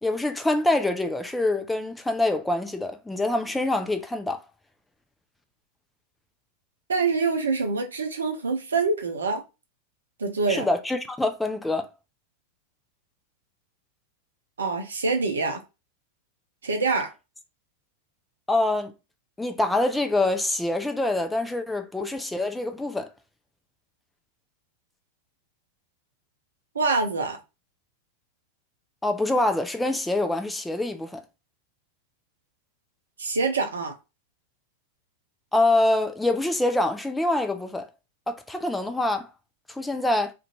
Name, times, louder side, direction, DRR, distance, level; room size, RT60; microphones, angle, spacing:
voice 1, 0.0-4.4 10.5-11.9 18.5-18.9 19.4-23.1 29.0-31.2 35.5-37.9 38.3-39.3 39.7-40.3, left 2 dB, 5° left, 0.4 m, -25 dB
voice 2, 6.9-9.4 10.2-10.7 14.6-15.6 16.6-17.1 26.7-27.4 33.2-33.9, right 4 dB, 70° right, 0.5 m, -25 dB
2.5 x 2.2 x 2.7 m
figure-of-eight pair, 90°, 0 cm